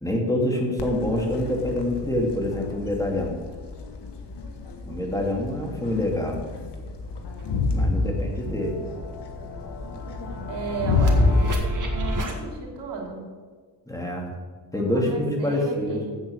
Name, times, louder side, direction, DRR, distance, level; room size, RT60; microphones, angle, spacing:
voice 1, 0.0-3.3 4.8-6.4 7.7-8.8 13.9-14.3 14.7-16.0, left 1 dB, 10° left, 0 dB, 2.4 m, -26 dB
Crowd, 0.8-11.5, left 3 dB, 75° left, 1.3 m, -28 dB
sound 1, 6.9-7.0 7.4-12.4, right 1 dB, 50° right, 1.9 m, -35 dB
voice 2, 7.9-8.5 10.5-13.2 14.7-16.2, right 4 dB, 80° right, -1 dB, 2.8 m, -35 dB
8.0 x 7.9 x 6.9 m, 1.5 s
cardioid pair, 85°, 41 cm